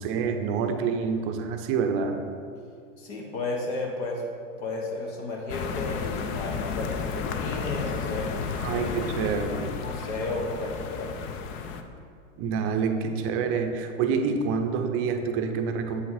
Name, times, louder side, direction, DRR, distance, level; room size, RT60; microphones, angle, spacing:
voice 1, 0.0-2.2 8.6-9.8 12.4-16.0, right 5 dB, 35° right, 6 dB, 0.7 m, -27 dB
voice 2, 3.0-4.2 4.6-8.3 8.7-8.9 9.8-11.1, left 2 dB, 55° left, 0 dB, 1.5 m, -33 dB
sound 1, 5.5-11.8, left 5 dB, 30° left, 0.5 m, -32 dB
7.9 x 5.8 x 4.0 m, 2.3 s
hypercardioid pair, 120°, 40 cm